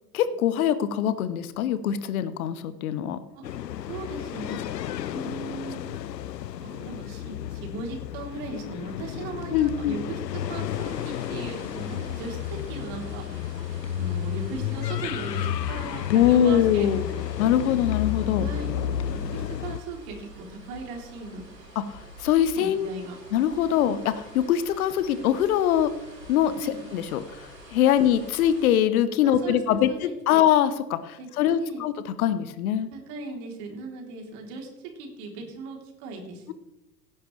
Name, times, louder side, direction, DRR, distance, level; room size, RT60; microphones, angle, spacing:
voice 1, 0.1-3.2 9.5-10.0 16.1-17.0 17.4-18.5 21.7-22.9 23.3-25.9 26.3-27.5 27.7-32.9, left 10 dB, 60° left, 13 dB, 1.1 m, -23 dB
sound 1, 3.4-19.8, left 11 dB, 85° left, 0.6 m, -32 dB
voice 2, 3.9-4.6 5.1-6.0 6.6-12.4 12.7-13.4 13.9-17.5 18.4-18.7 19.1-21.7 22.6-23.1 23.7-23.8 26.6-26.8 28.0-28.1 29.2-30.4 31.2-31.8 32.9-34.7 35.0-36.5, right 3 dB, 50° right, 1 dB, 3.5 m, -38 dB
sound 2, 10.7-28.6, right 1 dB, 90° right, 4.5 m, -47 dB
17.0 x 10.5 x 3.3 m, 0.93 s
figure-of-eight pair, 90°, 48 cm